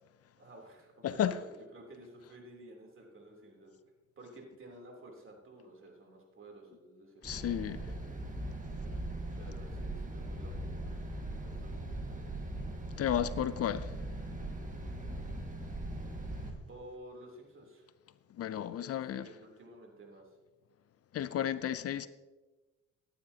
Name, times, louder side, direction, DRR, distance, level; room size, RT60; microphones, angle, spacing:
voice 1, 0.4-3.7 4.2-8.0 9.4-12.6 16.7-17.9 18.5-20.4, right 1 dB, 45° right, 3.2 m, -53 dB
voice 2, 1.0-1.4 7.2-7.9 13.0-13.9 18.4-19.3 21.1-22.1, left 10 dB, 55° left, 0.5 m, -33 dB
sound 1, 7.2-16.5, right 1 dB, 25° right, 1.7 m, -40 dB
15.5 x 10.0 x 2.8 m
cardioid pair, 90°, 30 cm